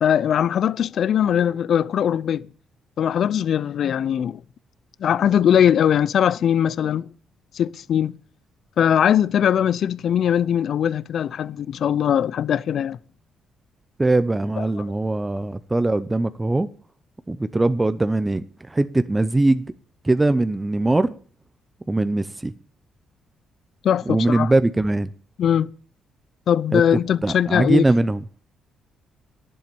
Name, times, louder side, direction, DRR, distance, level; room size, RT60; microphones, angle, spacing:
voice 1, 0.0-2.5 3.0-4.4 5.0-7.1 7.5-8.1 8.8-13.0 14.6-14.8 23.8-24.5 25.4-25.7 26.5-27.8, left 9 dB, 65° left, 0.6 m, -20 dB
voice 2, 14.0-16.7 17.3-18.4 18.7-19.7 20.0-21.2 21.9-22.5 24.1-25.1 26.7-26.8 27.2-28.2, right 2 dB, 15° right, 0.7 m, -21 dB
11.0 x 7.9 x 6.9 m
cardioid pair, 90°, 0 cm